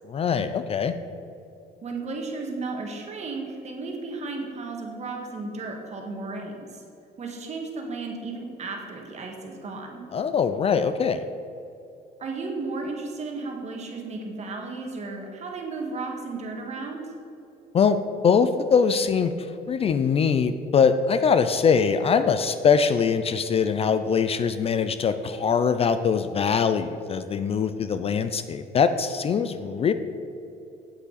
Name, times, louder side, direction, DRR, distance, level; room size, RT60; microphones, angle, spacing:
voice 1, 0.1-0.9 10.1-11.2 17.7-18.0 18.2-19.3 19.7-29.9, left 6 dB, 35° left, 11 dB, 0.4 m, -22 dB
voice 2, 1.8-6.8 7.2-10.0 12.2-17.0, right 3 dB, 40° right, 1 dB, 1.7 m, -34 dB
8.4 x 8.2 x 4.0 m, 2.8 s
cardioid pair, 110°, 17 cm